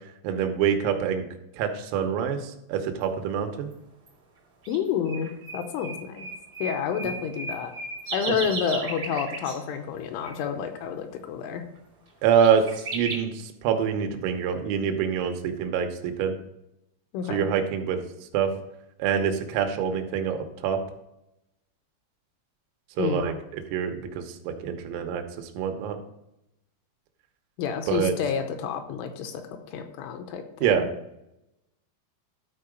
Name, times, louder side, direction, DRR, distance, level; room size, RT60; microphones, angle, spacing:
voice 1, 0.2-1.3 1.6-3.7 7.0-7.1 8.3-8.4 12.2-12.7 12.9-16.4 17.3-18.0 18.3-18.5 19.0-20.8 23.0-26.0 27.9-28.1 30.6-30.9, right 7 dB, 90° right, 6 dB, 3.6 m, -26 dB
sound 1, 4.1-4.2 4.6-4.8 5.1-9.6 10.2-10.4 11.8-11.9 12.3-13.2, right 3 dB, 70° right, 1.1 m, -35 dB
voice 2, 4.7-6.3 6.6-7.7 8.1-11.6 17.1-17.5 23.0-23.3 27.6-29.4 29.7-30.8, left 7 dB, 80° left, 6 dB, 3.1 m, -29 dB
12.5 x 4.7 x 5.1 m, 0.84 s
omnidirectional pair, 5.9 m